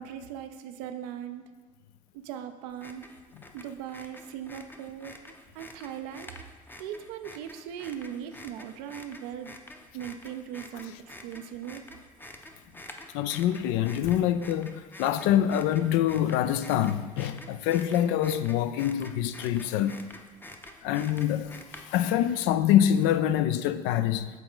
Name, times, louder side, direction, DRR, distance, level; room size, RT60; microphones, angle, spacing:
voice 1, 0.0-1.5 2.1-3.1 3.5-5.2 5.5-6.3 6.8-9.5 9.9-11.9, right 9 dB, 80° right, 8 dB, 0.5 m, -39 dB
sound 1, 2.7-22.2, left 1 dB, 10° left, 0.6 m, -48 dB
voice 2, 13.1-20.0 20.8-24.3, left 11 dB, 75° left, 12 dB, 0.4 m, -25 dB
7.2 x 3.8 x 3.8 m, 1.4 s
hypercardioid pair, 75°, 20 cm